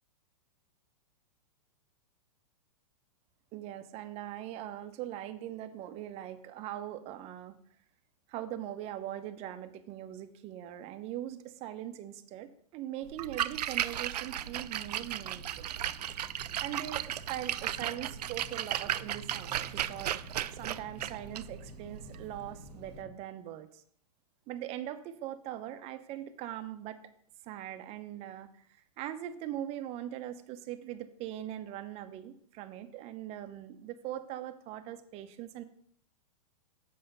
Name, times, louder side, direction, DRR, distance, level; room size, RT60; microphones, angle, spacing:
voice 1, 3.5-7.6 8.3-15.7 16.2-16.3 16.6-20.2 20.5-23.8 24.5-27.0 27.4-35.6, right 12 dB, 30° right, 10 dB, 0.8 m, -41 dB
Splash splatter, 13.1-23.0, right 11 dB, 85° right, 0.4 m, -36 dB
sound 1, 14.2-23.1, left 6 dB, 20° left, 1.0 m, -53 dB
7.9 x 5.6 x 5.4 m, 0.63 s
hypercardioid pair, 135°, 20 cm